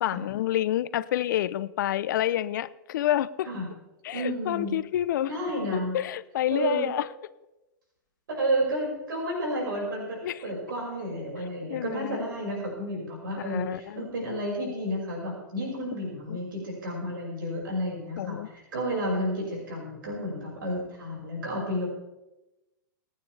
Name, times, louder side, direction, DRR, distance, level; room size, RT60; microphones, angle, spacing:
voice 1, 0.0-3.5 4.0-5.3 5.7-7.1 10.2-10.4 11.7-12.2 13.4-14.1 16.3-16.4 18.2-18.5, left 12 dB, 65° left, 16 dB, 0.7 m, -28 dB
voice 2, 4.1-4.8 5.3-5.9 6.5-6.9 8.3-21.9, equal, 75° right, -2 dB, 5.8 m, -31 dB
27.0 x 9.5 x 3.4 m, 0.97 s
hypercardioid pair, 120°, 11 cm